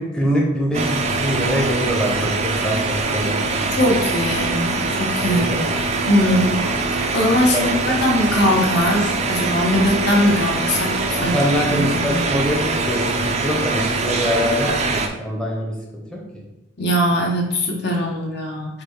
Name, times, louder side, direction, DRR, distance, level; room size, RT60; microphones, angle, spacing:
voice 1, 0.0-3.8 5.2-5.8 6.3-6.6 7.5-8.0 11.2-16.2, equal, 5° left, -3 dB, 0.7 m, -24 dB
sound 1, 0.7-15.1, right 3 dB, 35° right, 0.4 m, -23 dB
voice 2, 3.8-5.5 6.1-11.4 11.7-12.2 16.8-18.8, left 1 dB, 60° left, 0 dB, 0.9 m, -21 dB
5.0 x 2.3 x 4.5 m, 0.92 s
head